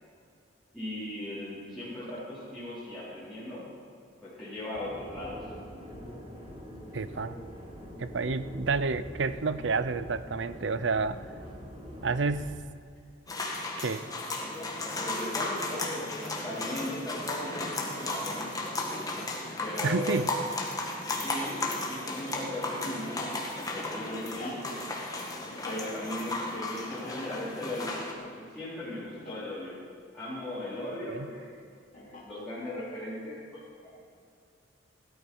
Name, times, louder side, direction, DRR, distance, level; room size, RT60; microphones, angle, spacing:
voice 1, 0.7-3.6 4.2-5.4 15.0-18.5 19.6-20.2 21.2-24.8 25.6-29.8 30.1-31.5 31.9-33.9, left 1 dB, 5° left, -13 dB, 4.0 m, -38 dB
sound 1, 4.7-12.4, equal, 30° right, 3.5 m, -44 dB
voice 2, 6.9-7.4 8.0-11.2 12.0-12.6 13.8-14.1 19.8-20.3 31.1-31.3, right 4 dB, 70° right, 13 dB, 0.6 m, -29 dB
sound 2, 13.3-28.1, left 2 dB, 20° left, 1.7 m, -35 dB
sound 3, 15.2-30.9 31.9-32.8, left 1 dB, 45° left, 3.0 m, -50 dB
16.5 x 12.5 x 5.5 m, 2.3 s
head